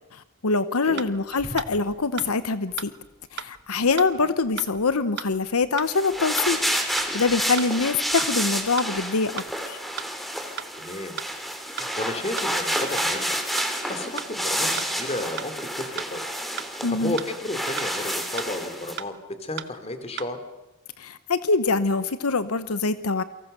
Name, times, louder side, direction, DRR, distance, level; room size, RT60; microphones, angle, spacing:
voice 1, 0.1-2.9 3.3-6.6 7.1-9.8 16.8-17.1 21.0-23.2, left 4 dB, 85° left, 13 dB, 0.9 m, -24 dB
Wild animals, 1.0-9.5, equal, 25° right, 5.2 m, -50 dB
sound 1, 1.0-1.1 1.6-1.7 2.2-2.3 2.8-2.9 3.4-3.5 4.0-4.1 4.6-4.7 5.2-5.3 5.8-5.9 6.4-6.5 7.0-7.1 7.6-7.7 8.2-8.3 8.8-8.9 9.4-9.5 10.0-10.1 10.6-10.7 11.2-11.3 11.8-11.9 12.4-12.5 13.0-13.1 13.6-13.7 14.2-14.3 14.8-14.9 15.4-15.5 16.0-16.1 16.6-16.7 17.2-17.3 17.8-17.9 18.4-18.5 19.0-19.1 19.6-19.7 20.2-20.3, right 9 dB, 55° right, 1.0 m, -34 dB
sound 2, 5.8-19.0, equal, ahead, 2.7 m, -29 dB
voice 2, 10.7-11.2 11.7-13.4 13.9-16.2 16.7-19.1 19.4-20.4, left 1 dB, 30° left, 9 dB, 2.8 m, -33 dB
29.0 x 24.0 x 6.7 m, 1.0 s
head